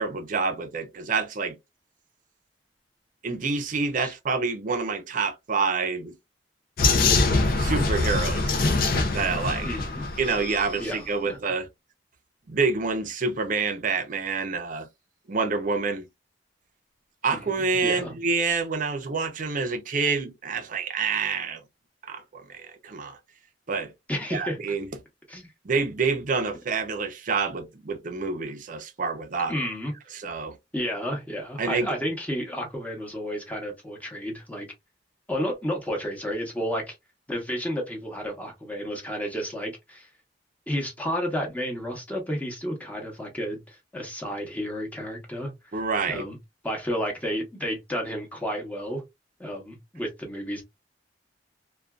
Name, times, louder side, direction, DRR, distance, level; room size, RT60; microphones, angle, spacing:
voice 1, 0.0-1.6 3.2-6.1 7.6-8.6 9.1-9.7 10.2-11.7 12.5-14.9 15.3-16.1 17.2-21.6 22.1-23.2 23.7-23.9 24.3-24.9 25.6-29.5 30.1-30.6 31.6-31.9 45.7-46.2, right 4 dB, 45° right, 0.5 m, -27 dB
Vehicle, 6.8-10.7, left 3 dB, 55° left, 0.5 m, -23 dB
voice 2, 9.6-10.1 10.8-11.4 17.3-17.4 17.8-18.1 24.1-24.6 25.3-25.5 29.5-29.9 30.7-34.7 35.3-37.0 37.3-40.1 40.7-45.5 46.1-46.4 46.6-49.0 49.4-50.6, equal, 10° left, 0.8 m, -31 dB
2.5 x 2.3 x 2.2 m
head